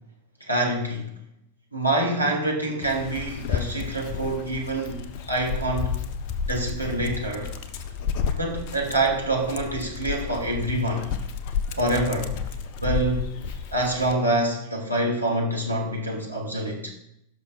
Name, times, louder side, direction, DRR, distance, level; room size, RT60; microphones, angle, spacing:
voice 1, 0.4-1.1 1.7-6.0 6.4-7.5 8.3-11.1 11.7-12.4 12.8-13.3 13.7-16.9, right 1 dB, 90° right, -1 dB, 1.7 m, -26 dB
Dog, 2.8-14.2, left 6 dB, 45° left, 0.6 m, -31 dB
17.5 x 6.1 x 2.4 m, 0.77 s
figure-of-eight pair, 90°, 0 cm